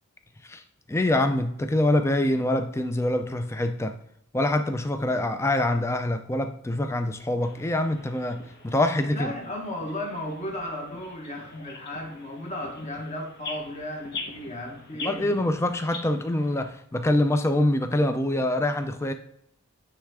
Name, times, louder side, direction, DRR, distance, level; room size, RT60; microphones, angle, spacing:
voice 1, 0.9-4.0 4.3-9.3 15.0-19.1, left 1 dB, 10° left, 0.4 m, -25 dB
sound 1, 7.4-16.7, left 3 dB, 50° left, 1.2 m, -43 dB
voice 2, 9.1-15.4, left 1 dB, 30° left, 1.2 m, -35 dB
9.8 x 3.3 x 3.6 m
head